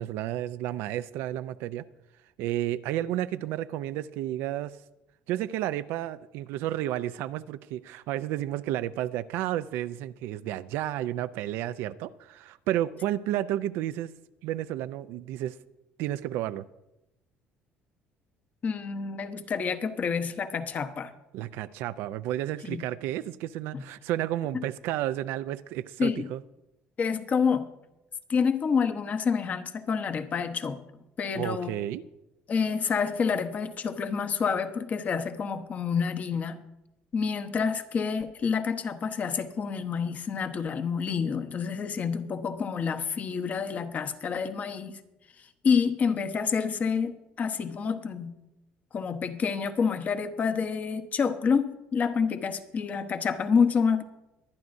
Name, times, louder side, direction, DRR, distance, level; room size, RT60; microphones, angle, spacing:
voice 1, 0.0-1.9 2.4-4.8 5.3-14.1 14.4-15.6 16.0-16.6 21.3-26.4 31.3-32.0, right 13 dB, 80° right, 0.4 m, -31 dB
voice 2, 18.6-21.1 22.6-22.9 23.7-23.8 24.5-24.6 26.0-26.3 27.0-27.7 28.3-30.8 31.2-31.8 32.5-36.6 37.1-45.0 45.4-48.4 48.9-54.0, left 6 dB, 40° left, 1.0 m, -28 dB
23.5 x 9.5 x 2.6 m
supercardioid pair, 95°, 4 cm